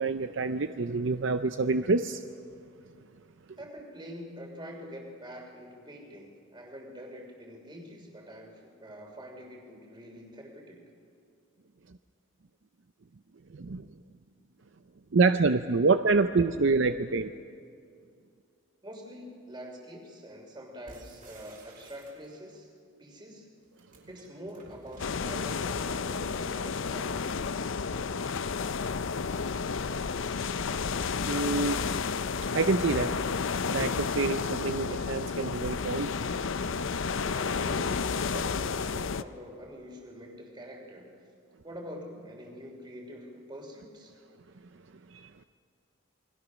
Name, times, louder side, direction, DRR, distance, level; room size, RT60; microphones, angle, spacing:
voice 1, 0.0-2.2 13.5-13.8 15.1-17.3 31.3-31.8 32.5-33.1 33.7-36.1 45.1-45.3, right 3 dB, 60° right, 10 dB, 0.6 m, -26 dB
voice 2, 3.6-10.8 18.8-22.7 23.0-23.5 24.1-27.2 37.3-41.1 41.6-44.1, equal, 20° right, 2 dB, 3.1 m, -45 dB
sound 1, 20.9-22.6 23.6-26.9, right 2 dB, 40° right, 4.0 m, -54 dB
sound 2, 25.0-39.2, left 5 dB, 65° left, 0.6 m, -31 dB
28.0 x 21.5 x 6.3 m, 2.4 s
head